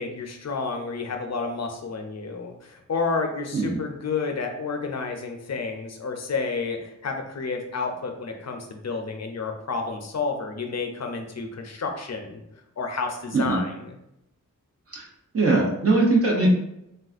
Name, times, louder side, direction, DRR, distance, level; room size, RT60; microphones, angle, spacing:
voice 1, 0.0-12.4 12.8-14.0, left 4 dB, 55° left, 4 dB, 0.5 m, -30 dB
voice 2, 15.3-16.5, right 3 dB, 45° right, -3 dB, 0.7 m, -21 dB
3.3 x 2.4 x 2.4 m, 0.83 s
wide cardioid pair, 85°, 32 cm